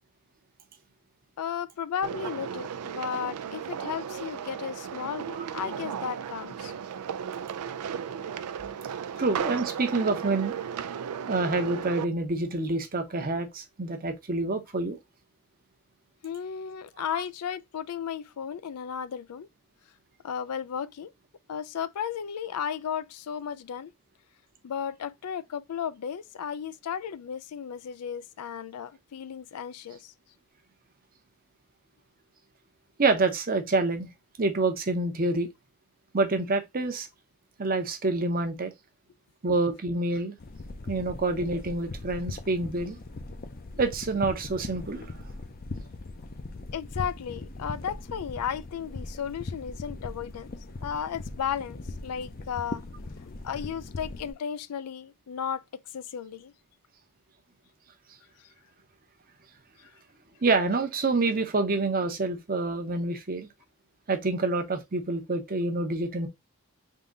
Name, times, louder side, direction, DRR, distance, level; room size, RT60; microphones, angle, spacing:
voice 1, 1.4-6.7 16.2-19.5 20.2-21.1 21.5-23.9 24.6-30.1 46.7-50.5 50.8-52.8 53.4-56.5 59.8-59.9, left 8 dB, 90° left, 0.4 m, -34 dB
sound 1, 2.0-12.1, right 8 dB, 90° right, 0.4 m, -35 dB
voice 2, 9.2-10.5 11.3-15.0 33.0-34.1 34.4-35.5 36.1-37.1 37.6-38.7 39.4-40.3 40.9-43.0 43.8-45.1 60.4-63.5 64.1-66.3, right 3 dB, 40° right, 0.7 m, -27 dB
sound 2, 40.4-54.3, left 2 dB, 40° left, 0.6 m, -40 dB
3.7 x 2.7 x 3.8 m
head